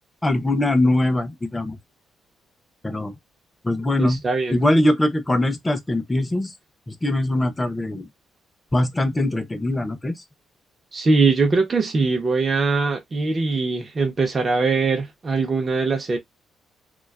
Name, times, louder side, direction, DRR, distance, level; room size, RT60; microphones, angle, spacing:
voice 1, 0.2-1.8 2.8-3.1 3.6-4.2 4.5-6.5 6.9-8.1 8.7-10.2, left 1 dB, 15° left, 0.6 m, -22 dB
voice 2, 4.0-4.6 10.9-16.2, right 4 dB, 35° right, 0.6 m, -21 dB
2.4 x 2.3 x 2.2 m
cardioid pair, 90°, 0 cm